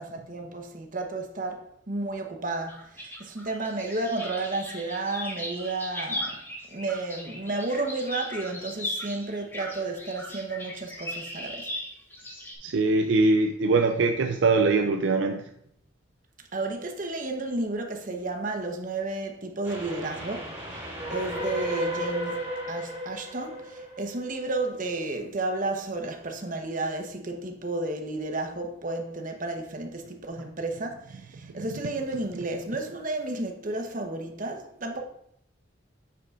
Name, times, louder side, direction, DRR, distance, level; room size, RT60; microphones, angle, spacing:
voice 1, 0.0-6.4 6.7-11.7 16.5-22.4 22.7-35.0, right 2 dB, 45° right, 0.9 m, -32 dB
sound 1, 2.7-12.5, left 1 dB, 10° left, 1.2 m, -38 dB
voice 2, 12.6-15.5, right 3 dB, 65° right, 0.4 m, -22 dB
Train, 19.6-24.9, equal, 10° right, 2.7 m, -34 dB
8.2 x 6.6 x 2.4 m
head